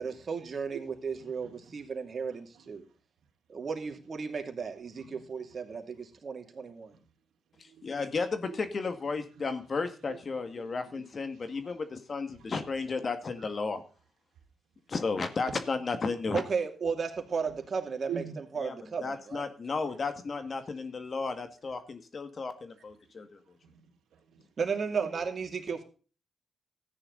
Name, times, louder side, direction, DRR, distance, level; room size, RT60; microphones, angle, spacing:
voice 1, 0.0-2.8 3.5-6.9 16.3-18.1 18.5-19.4 24.6-25.8, right 5 dB, 50° right, 2.7 m, -34 dB
voice 2, 1.1-2.0 2.3-2.7 4.9-5.6 6.5-7.1 7.5-7.9 8.5-8.8 9.4-11.8 12.4-12.6 13.0-13.4 15.5-15.6 17.4-17.6 18.1-18.4 20.6-20.7 23.0-23.1 23.4-24.4 25.0-25.2 25.7-25.8, right 7 dB, 85° right, 3.2 m, -47 dB
voice 3, 7.8-13.8 14.9-16.4 18.6-18.8 19.0-23.3, left 4 dB, 50° left, 2.0 m, -33 dB
14.0 x 9.9 x 4.0 m
cardioid pair, 60°, 0 cm